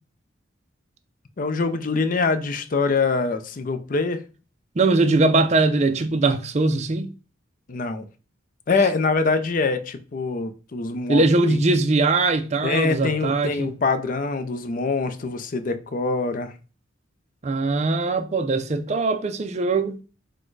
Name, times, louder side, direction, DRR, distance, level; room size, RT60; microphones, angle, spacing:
voice 1, 1.4-4.2 7.7-8.0 8.7-11.6 12.6-16.5, left 4 dB, 45° left, 0.5 m, -24 dB
voice 2, 4.8-7.1 11.1-13.7 17.4-20.0, right 3 dB, 35° right, 0.4 m, -21 dB
4.2 x 2.2 x 4.6 m
head